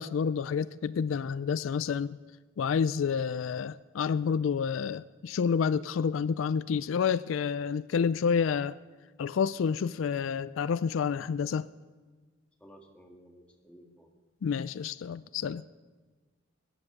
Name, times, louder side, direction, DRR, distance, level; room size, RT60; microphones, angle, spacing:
voice 1, 0.0-2.2 2.6-8.8 9.2-11.7 14.4-15.6, left 6 dB, 75° left, 17 dB, 0.4 m, -29 dB
voice 2, 12.6-14.1, equal, 5° left, 1 dB, 1.8 m, -55 dB
21.0 x 10.5 x 5.9 m, 1.4 s
head